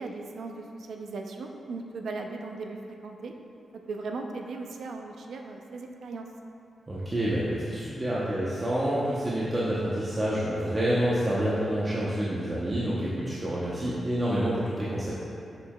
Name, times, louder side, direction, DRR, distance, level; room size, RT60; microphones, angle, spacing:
voice 1, 0.0-3.3 3.9-6.3, right 3 dB, 75° right, 3 dB, 0.5 m, -37 dB
voice 2, 6.9-15.1, right 1 dB, 25° right, -8 dB, 0.9 m, -28 dB
7.1 x 6.9 x 2.3 m, 2.6 s
wide cardioid pair, 105°, 0 cm